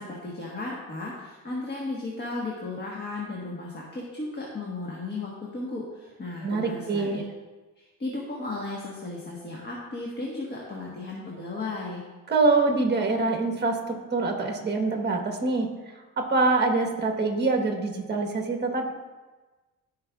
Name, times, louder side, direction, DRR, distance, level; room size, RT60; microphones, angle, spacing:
voice 1, 0.0-7.3 7.8-12.0, left 2 dB, 30° left, -3 dB, 1.4 m, -35 dB
voice 2, 6.4-7.2 12.3-13.8 14.1-15.7 16.2-18.9, right 3 dB, 30° right, 2 dB, 1.3 m, -24 dB
14.0 x 5.3 x 2.4 m, 1.2 s
cardioid pair, 115°, 35 cm